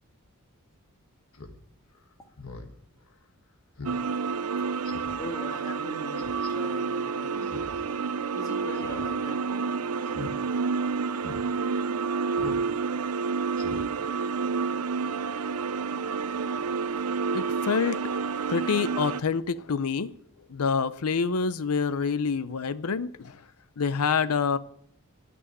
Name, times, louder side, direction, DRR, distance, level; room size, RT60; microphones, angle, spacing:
Speech synthesizer, 1.3-1.6 1.9-2.0 2.4-2.7 3.1-3.2 3.8-4.0 4.3-4.4 4.8-5.2 6.2-6.5 7.4-7.8 8.1-8.2 8.7-9.1 9.4-9.6 10.1-10.3 10.7-10.8 11.2-11.4 12.4-12.6 13.0-13.1 13.5-13.9 14.2-14.3, left 3 dB, 65° left, 1.5 m, -41 dB
sound 1, 3.8-19.2, right 5 dB, 85° right, 0.5 m, -29 dB
voice 1, 5.2-7.5 8.3-10.0 10.8-11.0, left 1 dB, 15° left, 1 dB, 1.9 m, -41 dB
voice 2, 17.3-18.0 18.4-20.1 20.5-23.4 23.8-24.6, left 5 dB, 85° left, 14 dB, 0.6 m, -27 dB
12.5 x 6.2 x 9.3 m, 0.68 s
head